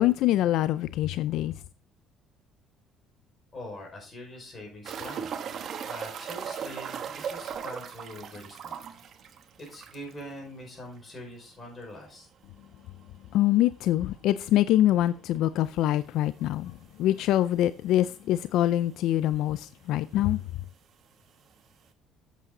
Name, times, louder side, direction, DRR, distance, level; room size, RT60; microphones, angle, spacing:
voice 1, 0.0-1.5 13.3-20.4, left 13 dB, 75° left, 0.3 m, -24 dB
voice 2, 3.5-5.3 5.8-8.9 9.6-12.3, left 1 dB, 30° left, 5.1 m, -43 dB
sound 1, 4.8-10.2 10.5-10.6 11.0-11.1 13.8-13.9 15.6-15.7 16.5-16.6 16.8-16.9 17.8-17.9 18.1-18.7 19.7-19.8, right 7 dB, 50° right, 1.1 m, -37 dB
8.2 x 7.6 x 3.8 m
cardioid pair, 115°, 0 cm